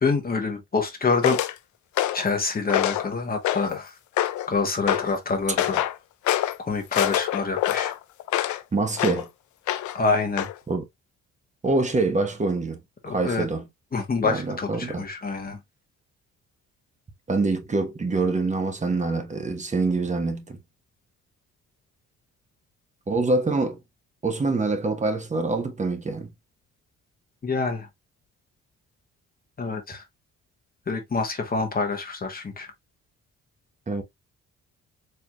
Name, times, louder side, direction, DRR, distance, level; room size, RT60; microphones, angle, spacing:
voice 1, 0.0-1.4 2.1-3.9 4.5-5.8 6.7-7.9 9.9-10.5 13.0-13.5 13.9-15.6 27.4-27.9 29.6-30.0 30.9-32.7, left 4 dB, 30° left, 1.1 m, -26 dB
sound 1, 1.2-1.5 2.0-2.3 2.7-3.1 3.4-3.8 4.2-4.5 4.9-5.1 5.6-6.0 6.3-6.6 6.9-8.6 9.0-9.2 9.7-10.0 10.4-10.5, left 13 dB, 75° left, 0.5 m, -25 dB
voice 2, 8.7-9.3 10.7-10.9 11.6-12.8 13.1-13.7 14.2-15.0 17.3-20.6 23.1-23.8 24.2-26.3 33.9-34.0, right 3 dB, 25° right, 1.0 m, -25 dB
4.5 x 3.4 x 2.3 m
cardioid pair, 90°, 30 cm